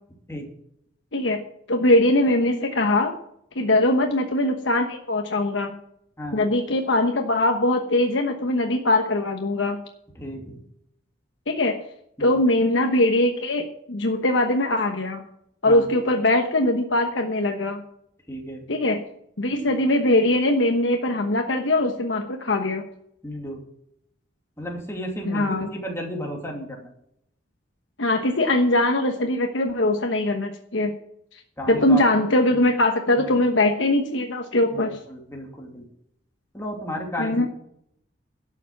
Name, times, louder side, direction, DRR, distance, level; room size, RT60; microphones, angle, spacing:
voice 1, 1.7-3.1 3.5-5.7 6.3-9.8 11.5-11.8 12.2-15.2 15.6-17.8 18.7-19.0 19.4-22.8 25.2-25.7 28.0-30.9 31.3-31.4 31.7-35.0 37.2-37.5, left 1 dB, 85° left, 3 dB, 1.2 m, -21 dB
voice 2, 10.2-10.6 12.2-12.3 15.7-16.1 18.3-18.6 19.5-19.7 23.2-23.6 24.6-26.8 31.6-32.0 34.7-35.8 36.5-37.5, equal, 15° left, 0 dB, 2.8 m, -33 dB
12.0 x 7.1 x 7.4 m, 0.72 s
head